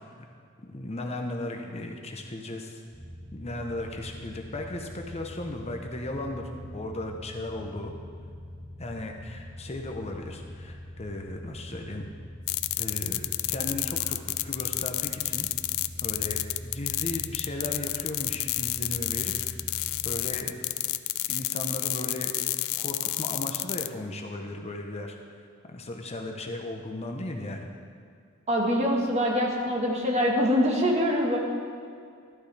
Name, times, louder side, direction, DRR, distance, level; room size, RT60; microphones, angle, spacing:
voice 1, 0.6-2.8 3.3-7.9 8.8-12.1 12.8-15.5 16.0-19.3 20.0-20.7 21.3-22.3 22.8-25.2 25.7-27.7, left 1 dB, 30° left, 3 dB, 0.8 m, -36 dB
sound 1, 2.9-20.4, left 1 dB, 10° right, 1.1 m, -43 dB
sound 2, 12.5-23.9, left 17 dB, 80° left, 0.4 m, -30 dB
voice 2, 28.5-31.4, equal, 30° right, 0 dB, 1.5 m, -24 dB
12.5 x 11.5 x 3.4 m, 2.3 s
head